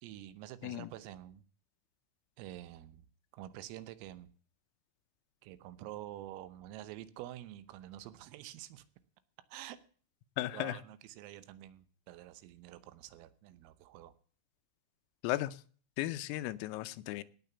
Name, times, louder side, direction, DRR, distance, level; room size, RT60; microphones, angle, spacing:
voice 1, 0.0-1.4 2.4-3.1 3.3-4.3 5.4-8.8 9.5-9.8 10.5-14.1, right 13 dB, 85° right, 3.6 m, -48 dB
voice 2, 10.4-10.8 15.2-15.6 16.0-17.2, left 16 dB, 85° left, 3.4 m, -35 dB
18.0 x 6.8 x 6.9 m
omnidirectional pair, 5.9 m